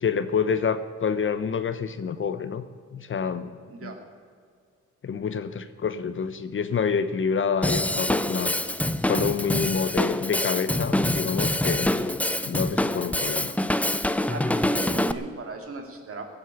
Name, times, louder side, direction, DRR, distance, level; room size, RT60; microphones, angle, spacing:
voice 1, 0.0-2.6 2.9-3.5 3.8-3.9 5.0-8.5 9.0-11.9 12.4-13.5, left 6 dB, 40° left, 11 dB, 0.9 m, -27 dB
Drum kit / Drum, 7.6-15.1, left 1 dB, 5° left, 0.6 m, -25 dB
voice 2, 14.3-16.3, right 3 dB, 50° right, 3 dB, 2.9 m, -36 dB
17.0 x 8.0 x 8.3 m, 2.1 s
cardioid pair, 90°, 30 cm